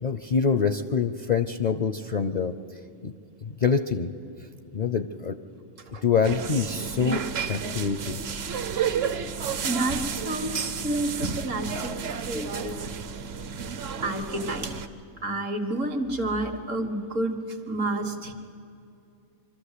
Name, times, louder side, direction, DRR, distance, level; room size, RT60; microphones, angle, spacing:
voice 1, 0.0-2.5 3.0-3.1 3.4-4.1 4.7-5.4 6.0-8.2, left 6 dB, 50° left, 9 dB, 0.5 m, -25 dB
sound 1, 6.2-14.9, right 6 dB, 55° right, 1.0 m, -31 dB
voice 2, 8.7-9.0 9.5-12.7 14.0-14.7 15.2-18.3, right 1 dB, 75° right, 6 dB, 2.1 m, -30 dB
24.0 x 13.5 x 8.2 m, 2.5 s
omnidirectional pair, 1.3 m